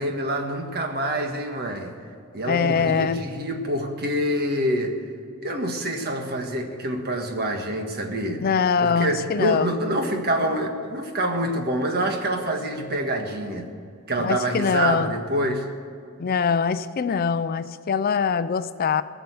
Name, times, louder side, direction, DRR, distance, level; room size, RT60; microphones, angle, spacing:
voice 1, 0.0-1.9 2.3-5.0 5.4-8.4 8.8-13.7 14.1-15.6, right 1 dB, 50° right, 4 dB, 1.6 m, -26 dB
voice 2, 2.4-3.2 8.4-9.8 14.2-15.1 16.2-19.0, left 6 dB, 45° left, 14 dB, 0.4 m, -23 dB
18.0 x 6.9 x 8.2 m, 2.5 s
head